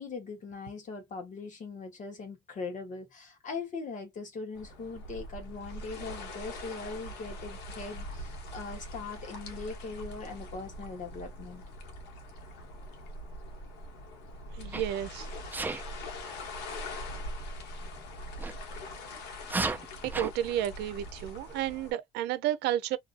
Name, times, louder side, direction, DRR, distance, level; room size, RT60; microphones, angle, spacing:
voice 1, 0.0-11.6, left 4 dB, 50° left, 1.2 m, -40 dB
sound 1, 4.5-21.9, left 1 dB, 80° left, 1.1 m, -42 dB
voice 2, 14.5-15.3 20.0-23.0, right 12 dB, 85° right, 0.6 m, -31 dB
Sneeze, 14.7-15.0 15.5-15.8 18.4-18.5 19.4-20.3, right 3 dB, 10° right, 0.4 m, -33 dB
2.7 x 2.6 x 2.5 m
cardioid pair, 110°, 17 cm